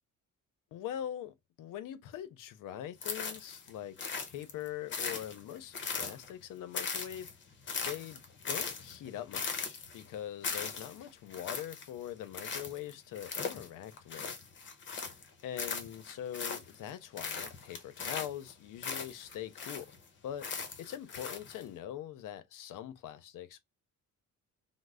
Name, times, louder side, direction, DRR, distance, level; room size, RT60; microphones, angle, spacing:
voice 1, 0.7-7.3 7.9-8.2 8.5-14.4 15.4-19.9 20.2-20.5 20.8-23.6, left 11 dB, 80° left, 0.6 m, -43 dB
sound 1, 3.0-3.7 4.0-6.4 6.7-15.3 15.6-16.9 17.2-20.0 20.4-21.6, left 5 dB, 35° left, 0.7 m, -39 dB
3.1 x 2.0 x 3.5 m
cardioid pair, 170°, 31 cm